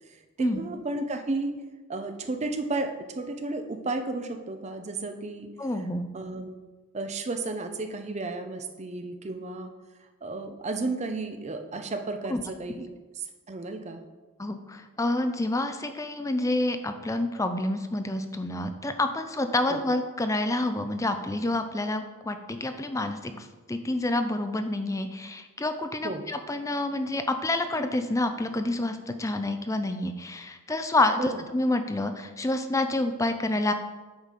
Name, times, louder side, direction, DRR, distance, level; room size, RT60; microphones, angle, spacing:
voice 1, 0.1-1.6 1.9-5.5 6.1-6.6 6.9-9.7 10.2-12.9 13.1-14.0 19.7-19.8 26.0-26.2 31.2-31.4, right 2 dB, 30° right, 6 dB, 0.6 m, -33 dB
voice 2, 5.6-6.1 12.3-12.4 14.4-33.7, left 2 dB, 15° left, 8 dB, 0.4 m, -28 dB
8.0 x 4.2 x 5.1 m, 1.3 s
head